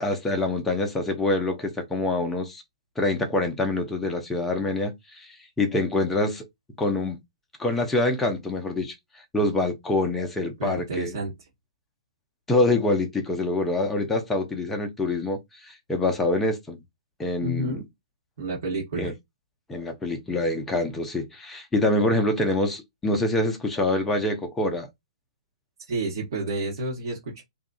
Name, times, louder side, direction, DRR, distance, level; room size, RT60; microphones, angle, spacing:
voice 1, 0.0-2.6 3.0-6.4 6.8-7.2 7.6-8.9 9.3-11.2 12.5-16.8 17.2-17.8 19.0-19.1 19.7-24.9, left 2 dB, 10° left, 0.6 m, -25 dB
voice 2, 10.6-11.3 17.4-17.8 18.4-19.1 25.9-27.4, right 2 dB, 50° right, 1.1 m, -30 dB
2.7 x 2.4 x 2.3 m
figure-of-eight pair, 120°, 3 cm